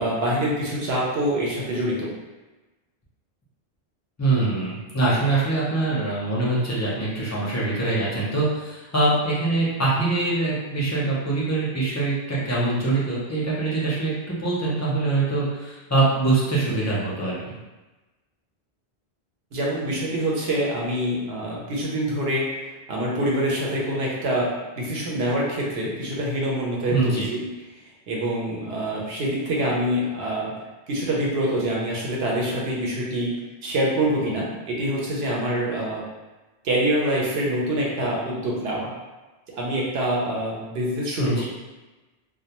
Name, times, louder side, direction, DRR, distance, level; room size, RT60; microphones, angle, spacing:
voice 1, 0.0-2.1 19.5-22.5 22.9-27.4 28.1-30.5 30.9-33.4 33.6-36.0 36.6-38.9 39.5-41.4, right 1 dB, 70° right, -3 dB, 0.9 m, -25 dB
voice 2, 4.2-17.5 26.9-27.3 41.2-41.4, right 2 dB, 25° left, -7 dB, 0.4 m, -23 dB
2.2 x 2.2 x 2.8 m, 1.1 s
omnidirectional pair, 1.1 m